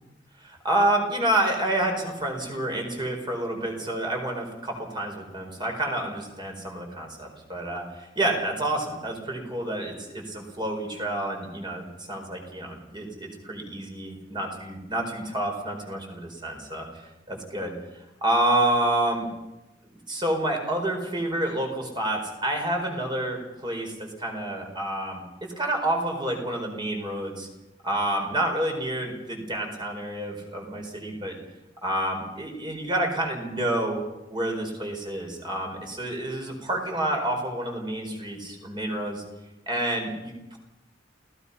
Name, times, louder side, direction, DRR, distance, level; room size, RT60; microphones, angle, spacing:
voice 1, 0.4-16.9 17.3-17.7 18.2-19.3 20.1-25.2 25.6-27.5 27.8-31.4 31.8-34.0 34.3-39.2 39.7-40.6, right 1 dB, 25° right, 2 dB, 4.6 m, -28 dB
28.5 x 17.5 x 5.6 m, 1.0 s
head